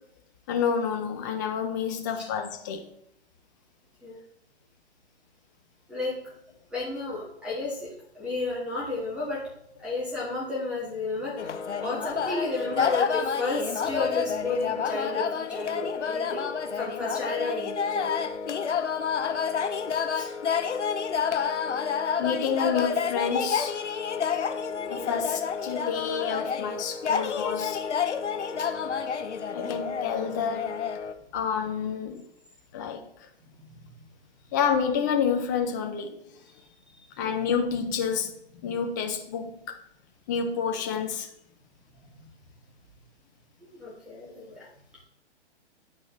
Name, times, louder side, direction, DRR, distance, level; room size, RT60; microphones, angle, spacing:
voice 1, 0.5-2.8 22.2-23.8 24.9-27.8 28.6-28.7 29.5-30.7 31.3-32.3 32.7-33.1 34.5-36.2 37.2-38.3 38.6-39.6 40.3-41.3, left 6 dB, 15° left, 0.5 m, -29 dB
voice 2, 6.7-7.9 8.1-9.4 9.8-16.4 16.7-18.2 19.9-20.3 24.7-25.4 33.6-33.7 36.5-36.6 36.9-37.3 43.6-44.7, left 3 dB, 5° right, 1.5 m, -32 dB
sound 1, 11.4-31.1, left 6 dB, 75° left, 0.6 m, -29 dB
9.7 x 4.3 x 3.2 m
figure-of-eight pair, 120°, 35 cm